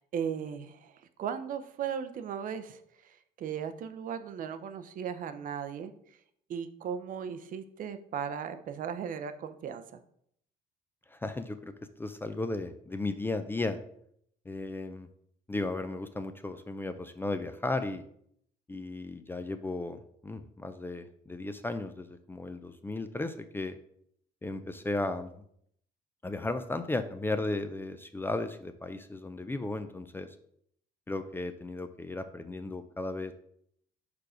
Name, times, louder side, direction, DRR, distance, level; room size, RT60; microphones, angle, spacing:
voice 1, 0.1-0.9 1.2-2.8 3.4-5.9 6.5-9.8, right 7 dB, 55° right, 10 dB, 0.6 m, -36 dB
voice 2, 11.1-11.7 12.0-13.8 14.5-15.1 15.5-18.0 18.7-23.8 24.4-25.3 26.2-30.3 31.1-33.3, left 2 dB, 15° left, 9 dB, 0.4 m, -35 dB
4.8 x 4.7 x 4.9 m, 0.68 s
cardioid pair, 110°, 17 cm